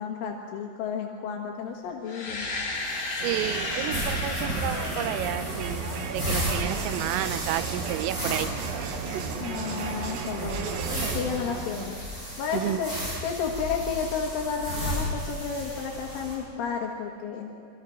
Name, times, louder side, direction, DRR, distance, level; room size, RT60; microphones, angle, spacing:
voice 1, 0.0-2.5 9.4-10.8 11.1-12.0 12.4-12.9 13.2-17.5, left 6 dB, 75° left, 0 dB, 4.0 m, -32 dB
sound 1, 2.0-6.0, left 2 dB, 40° left, 4.1 m, -33 dB
Crowd, 3.2-12.1, right 6 dB, 70° right, 2.2 m, -35 dB
voice 2, 3.2-8.5 12.5-12.8, right 13 dB, 90° right, 12 dB, 3.4 m, -31 dB
sound 2, 3.9-16.3, equal, 15° right, 7.7 m, -34 dB
27.5 x 24.0 x 6.0 m, 2.3 s
omnidirectional pair, 5.8 m